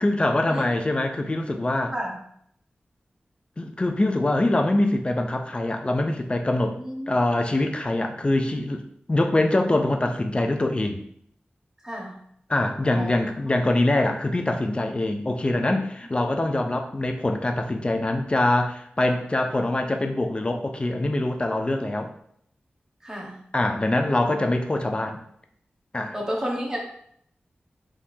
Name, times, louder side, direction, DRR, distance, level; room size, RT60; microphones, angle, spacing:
voice 1, 0.0-1.9 3.6-6.8 7.1-11.0 12.5-22.1 23.5-25.2 25.9-26.1, left 1 dB, 30° left, 4 dB, 0.5 m, -24 dB
voice 2, 6.8-7.1 11.8-12.2 12.9-13.1 13.4-13.5 23.0-23.4 26.1-26.8, equal, 15° right, -2 dB, 1.2 m, -31 dB
4.6 x 3.6 x 2.7 m, 0.68 s
wide cardioid pair, 90°, 4 cm